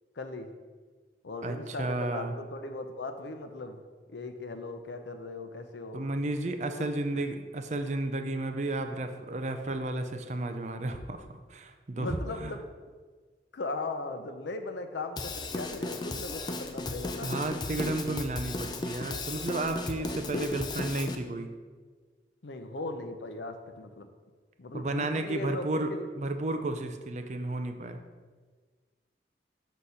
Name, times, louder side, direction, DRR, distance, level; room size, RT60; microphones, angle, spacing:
voice 1, 0.2-0.5 1.2-6.0 6.8-6.9 12.0-12.7 13.5-17.3 19.9-20.5 22.4-24.1 24.6-26.1, left 2 dB, 80° left, 7 dB, 0.6 m, -38 dB
voice 2, 1.4-2.4 5.9-12.5 17.2-21.5 24.7-28.0, right 2 dB, 40° right, 7 dB, 0.5 m, -33 dB
Drum kit / Drum, 15.2-21.2, left 2 dB, 25° left, 0.4 m, -35 dB
6.4 x 4.1 x 5.6 m, 1.5 s
head